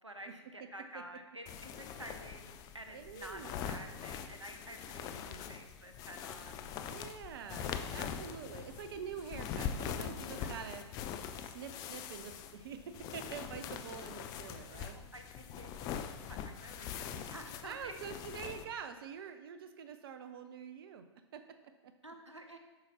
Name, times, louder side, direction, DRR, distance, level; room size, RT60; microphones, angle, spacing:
voice 1, 0.0-6.7 10.4-10.5 14.9-16.0 16.2-17.9 22.0-22.6, right 1 dB, 90° right, 5 dB, 0.8 m, -50 dB
sound 1, 1.5-18.6, left 8 dB, 25° left, 0.4 m, -43 dB
voice 2, 2.9-3.6 5.3-5.5 6.9-10.8 11.3-15.0 17.6-21.0 21.3-21.9, right 7 dB, 55° right, 9 dB, 0.5 m, -46 dB
7.5 x 5.6 x 2.9 m, 1.1 s
figure-of-eight pair, 105°, 15 cm